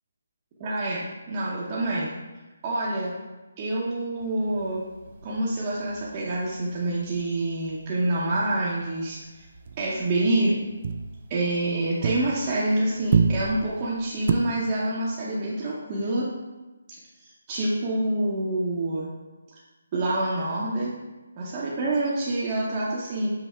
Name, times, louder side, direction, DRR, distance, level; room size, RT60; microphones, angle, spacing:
voice 1, 0.6-2.1 2.6-3.1 3.6-4.8 5.2-9.2 9.8-10.6 11.3-16.3 17.5-19.1 19.9-20.9 21.4-23.3, right 1 dB, 30° right, -6 dB, 0.7 m, -27 dB
sound 1, 4.2-7.9 8.2-8.5 8.8-12.7 12.9-14.3, right 5 dB, 45° right, 0.3 m, -29 dB
5.7 x 2.1 x 4.2 m, 1.1 s
figure-of-eight pair, 155°, 0 cm